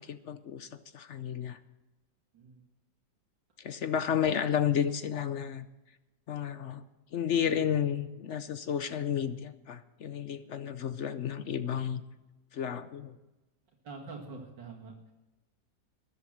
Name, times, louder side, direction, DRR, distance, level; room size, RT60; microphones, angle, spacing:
voice 1, 0.0-1.6 3.6-5.7 6.3-6.8 7.1-12.0 12.5-13.2, left 8 dB, 60° left, 12 dB, 0.7 m, -32 dB
voice 2, 13.8-15.1, right 3 dB, 85° right, -1 dB, 2.6 m, -45 dB
13.0 x 11.0 x 6.4 m, 1.1 s
omnidirectional pair, 1.9 m